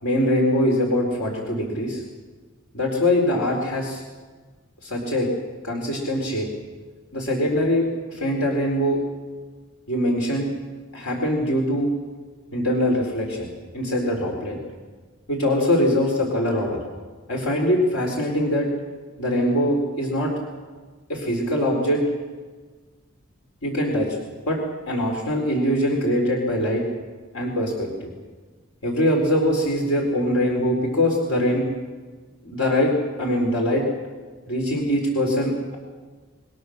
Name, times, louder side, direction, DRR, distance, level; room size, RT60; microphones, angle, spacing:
voice 1, 0.0-2.0 2.7-4.0 4.8-5.3 5.6-6.5 7.1-9.0 9.9-10.5 10.9-11.9 12.5-13.5 13.7-14.6 15.3-16.8 17.3-18.7 19.2-20.3 21.1-22.0 23.6-24.1 24.5-24.6 24.9-26.8 27.3-28.1 28.8-31.6 32.4-32.9 33.2-33.8 34.5-35.8, equal, 80° left, 0 dB, 4.3 m, -22 dB
28.5 x 21.0 x 6.6 m, 1.4 s
head